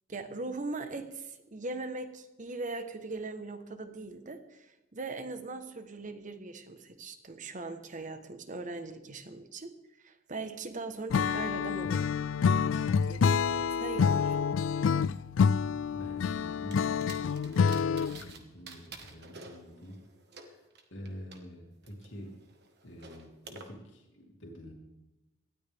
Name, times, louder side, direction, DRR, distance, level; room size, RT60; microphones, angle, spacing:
voice 1, 0.1-9.7 10.0-12.1 13.1-14.2, right 3 dB, 40° right, 9 dB, 1.1 m, -40 dB
Acoustic guitar / Strum, 11.1-18.3, left 6 dB, 90° left, 0.4 m, -27 dB
voice 2, 15.9-20.0 20.3-20.6 20.9-22.3 22.8-24.7, equal, 70° left, -1 dB, 2.5 m, -47 dB
sound 1, 16.7-18.4 18.7-21.4 21.8-23.7, right 4 dB, 60° right, 1.5 m, -50 dB
18.5 x 13.0 x 3.5 m, 1.0 s
head